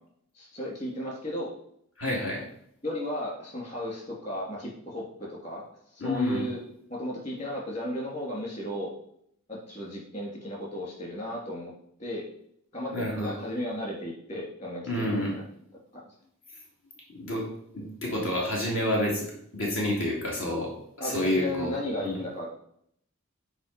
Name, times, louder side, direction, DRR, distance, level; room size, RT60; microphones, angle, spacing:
voice 1, 0.3-1.5 2.8-5.6 5.9-6.6 6.9-8.9 9.5-11.7 12.0-12.3 12.7-15.4 15.9-16.1 21.0-22.5, left 1 dB, 35° left, -2 dB, 3.0 m, -34 dB
voice 2, 2.0-2.4 6.0-6.5 12.9-13.3 14.8-15.3 17.1-17.5 17.7-19.3 19.5-22.2, left 1 dB, 70° left, -3 dB, 2.5 m, -29 dB
8.9 x 4.8 x 5.4 m, 0.69 s
head